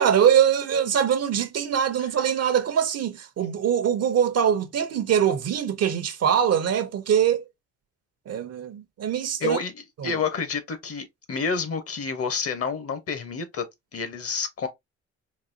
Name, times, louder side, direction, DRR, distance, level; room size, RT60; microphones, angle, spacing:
voice 1, 0.0-7.4 8.3-9.6 10.0-10.1, right 8 dB, 55° right, 0.7 m, -23 dB
voice 2, 9.4-13.6 13.9-14.7, left 5 dB, 50° left, 0.9 m, -29 dB
4.0 x 2.3 x 2.6 m
cardioid pair, 90°, 30 cm